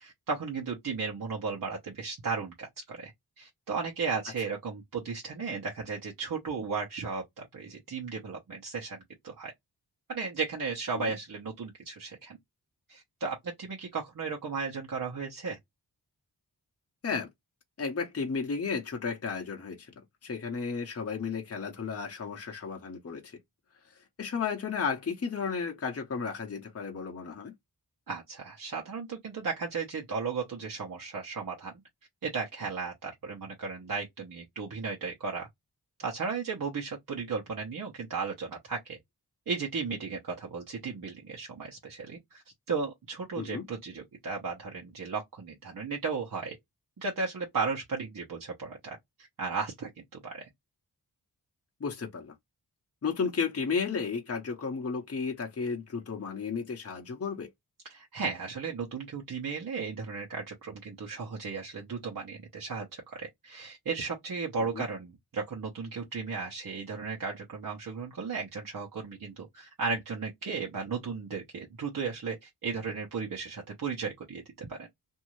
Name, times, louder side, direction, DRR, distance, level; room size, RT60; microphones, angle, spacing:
voice 1, 0.0-3.1 3.4-9.5 10.1-12.4 12.9-15.6 28.1-31.7 32.2-35.5 36.0-39.0 39.5-46.6 47.0-49.0 49.4-50.5 57.9-74.9, right 5 dB, 55° right, 1.0 m, -35 dB
voice 2, 17.8-19.9 20.2-23.4 23.9-27.5 43.4-43.7 51.8-52.3 53.0-57.5 64.7-64.8, left 5 dB, 40° left, 0.8 m, -33 dB
2.7 x 2.5 x 3.0 m
wide cardioid pair, 80°, 39 cm